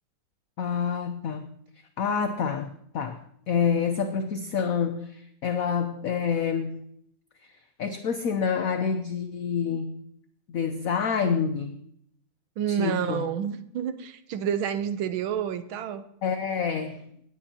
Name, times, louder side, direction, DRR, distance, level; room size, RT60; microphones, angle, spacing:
voice 1, 0.6-1.5 2.0-6.8 7.8-10.0 10.5-11.8 12.7-13.3 16.2-17.1, left 6 dB, 75° left, 7 dB, 0.8 m, -28 dB
voice 2, 12.6-16.0, right 8 dB, 80° right, 11 dB, 1.6 m, -29 dB
17.0 x 9.4 x 2.9 m, 0.69 s
omnidirectional pair, 2.2 m